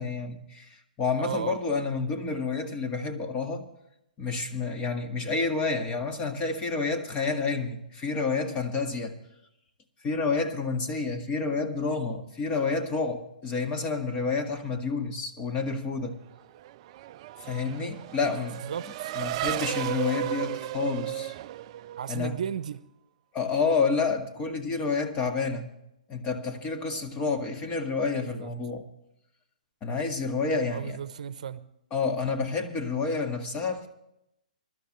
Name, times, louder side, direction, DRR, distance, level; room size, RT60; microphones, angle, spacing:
voice 1, 0.0-3.7 4.2-9.2 10.0-16.2 17.4-18.7 19.2-21.3 22.1-22.4 23.3-25.7 26.1-28.9 29.8-31.0 31.9-33.9, left 4 dB, 25° left, 1.8 m, -29 dB
voice 2, 1.2-1.6 18.2-18.3 18.6-19.1 22.0-22.8 28.4-28.5 30.7-31.6, right 8 dB, 60° right, 0.8 m, -34 dB
Race car auto racing / Accelerating revving vroom, 16.4-22.5, right 14 dB, 40° right, 0.4 m, -34 dB
23.0 x 12.5 x 3.2 m
figure-of-eight pair, 125°, 4 cm